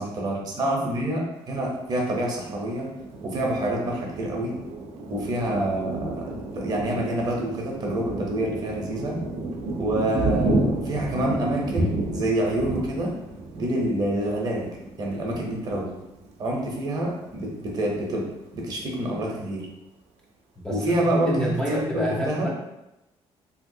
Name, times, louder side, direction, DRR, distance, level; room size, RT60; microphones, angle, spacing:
voice 1, 0.0-2.9 3.2-4.5 5.1-9.2 9.8-13.1 13.5-14.7 15.0-15.9 16.4-18.3 18.5-19.7 20.7-22.5, right 1 dB, 40° right, -1 dB, 0.7 m, -27 dB
Thunder, 2.5-16.8 17.3-17.4 17.7-18.3, right 2 dB, 75° right, 0.5 m, -31 dB
voice 2, 21.2-22.5, equal, 5° left, -5 dB, 0.3 m, -28 dB
3.4 x 2.8 x 2.6 m, 0.91 s
cardioid pair, 180°, 11 cm